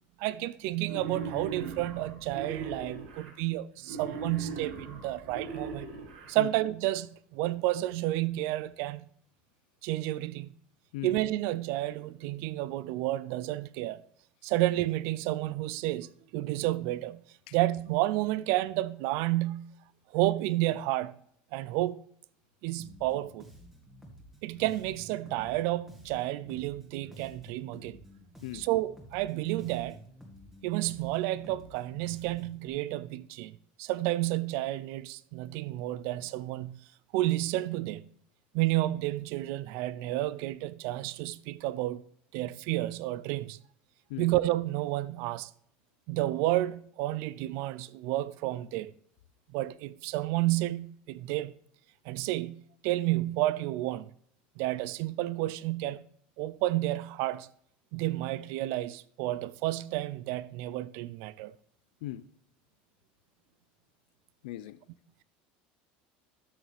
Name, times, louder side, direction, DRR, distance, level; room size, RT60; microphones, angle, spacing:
voice 1, 0.2-5.9 6.3-9.0 9.8-10.5 11.0-14.0 14.4-17.2 17.5-19.7 20.1-21.1 21.5-22.0 22.6-23.5 24.4-28.0 28.5-30.0 30.6-36.8 37.1-38.1 38.5-42.0 42.3-43.6 44.2-45.5 46.1-48.9 49.5-51.5 52.1-54.1 54.6-56.0 56.4-57.5 57.9-61.5, right 16 dB, 65° right, 0.4 m, -31 dB
Wild animals, 0.8-3.3 3.8-6.3, right 4 dB, 85° right, 1.9 m, -40 dB
Bass guitar, 22.8-32.7, equal, 10° right, 1.8 m, -52 dB
voice 2, 64.4-64.8, left 15 dB, 85° left, 0.5 m, -38 dB
12.5 x 6.2 x 3.5 m
supercardioid pair, 125°, 5 cm